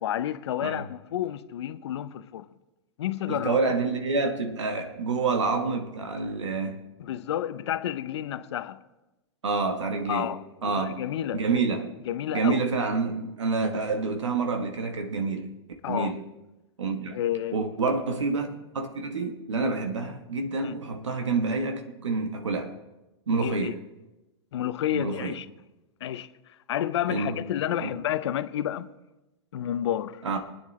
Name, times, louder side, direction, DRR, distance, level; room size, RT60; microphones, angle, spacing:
voice 1, 0.0-2.5 3.0-3.6 7.0-8.8 10.1-10.4 10.8-11.4 12.0-12.6 15.8-16.1 17.1-17.6 20.6-20.7 23.4-23.7 24.5-25.5 26.0-26.3 26.7-28.9 29.5-30.2, left 11 dB, 70° left, 0.7 m, -30 dB
voice 2, 3.3-6.8 9.4-10.3 10.6-11.0 11.3-11.9 12.3-15.5 15.9-16.2 16.8-17.2 17.5-22.8 23.3-23.8 24.9-25.3 27.1-27.4 27.8-27.9 30.2-30.4, right 4 dB, 90° right, 1.2 m, -28 dB
25.5 x 9.6 x 3.2 m
hypercardioid pair, 110°, 15 cm